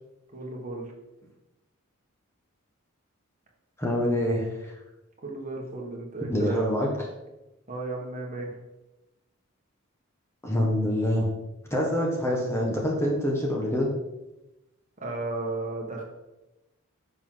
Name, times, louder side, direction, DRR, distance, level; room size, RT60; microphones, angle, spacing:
voice 1, 0.3-0.9 5.2-6.7 7.7-8.6 15.0-16.0, right 3 dB, 35° right, -1 dB, 1.6 m, -34 dB
voice 2, 3.8-4.7 6.2-6.9 10.4-11.3 11.7-13.9, left 1 dB, 10° left, -2 dB, 1.4 m, -26 dB
10.0 x 6.0 x 3.9 m, 0.97 s
head